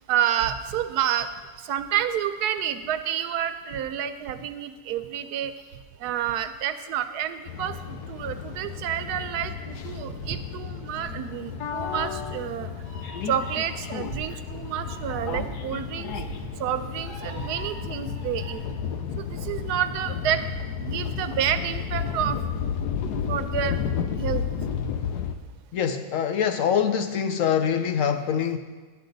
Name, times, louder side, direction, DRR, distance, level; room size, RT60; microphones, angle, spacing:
voice 1, 0.1-1.3 1.7-5.5 6.0-12.7 13.3-16.2 16.6-18.6 19.2-20.4 20.8-22.4 23.3-23.8 24.2-24.4, right 10 dB, 85° right, 10 dB, 1.1 m, -29 dB
sound 1, 7.5-25.4, left 7 dB, 90° left, 1.2 m, -32 dB
Meow, 11.8-18.5, left 1 dB, 35° left, 4.1 m, -42 dB
voice 2, 25.7-28.6, left 8 dB, 65° left, 7 dB, 0.9 m, -24 dB
10.5 x 10.0 x 3.9 m, 1.3 s
omnidirectional pair, 1.6 m